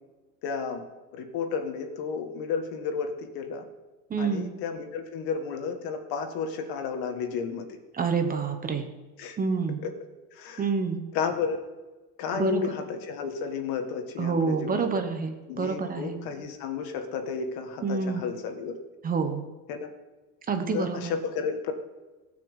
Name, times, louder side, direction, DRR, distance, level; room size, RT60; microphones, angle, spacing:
voice 1, 0.4-0.9 1.1-3.6 4.2-7.8 9.2-9.4 9.8-9.9 10.3-10.6 11.1-11.6 12.2-15.0 15.5-18.8 19.7-19.9 20.7-21.7, left 6 dB, 65° left, 6 dB, 1.8 m, -32 dB
voice 2, 4.1-4.5 7.9-8.9 9.4-9.8 10.6-11.0 12.3-12.8 14.2-16.2 17.8-18.3 19.0-19.4 20.5-21.1, right 5 dB, 20° right, 6 dB, 1.0 m, -27 dB
17.0 x 6.1 x 8.1 m, 1.2 s
cardioid pair, 170°, 38 cm